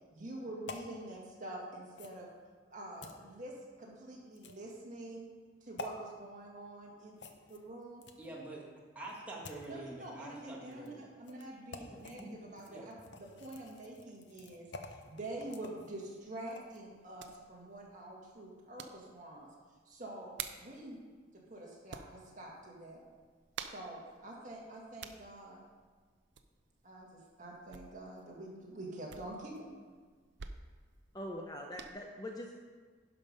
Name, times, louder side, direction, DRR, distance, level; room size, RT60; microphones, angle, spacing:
voice 1, 0.1-2.3 2.7-5.3 5.6-7.2 7.5-8.0 9.7-19.5 19.9-21.0 21.5-23.1 23.7-25.6 26.8-29.7, right 1 dB, 40° right, -3 dB, 1.9 m, -46 dB
sound 1, 0.7-0.9 1.9-2.2 3.0-3.2 4.3-4.7 5.8-5.9 7.2-8.3 9.0-9.7 10.7-10.9 11.2-11.4 11.7-12.2 12.6-16.8 17.2-17.4, left 3 dB, 55° left, 0.7 m, -49 dB
voice 2, 8.2-8.7 8.9-11.0 11.8-12.9, right 2 dB, 5° right, -4 dB, 1.4 m, -47 dB
sound 2, 15.2-31.9, right 7 dB, 55° right, 0.5 m, -52 dB
voice 3, 31.1-32.5, left 1 dB, 20° left, 1 dB, 0.6 m, -43 dB
11.5 x 5.2 x 5.4 m, 1.5 s
head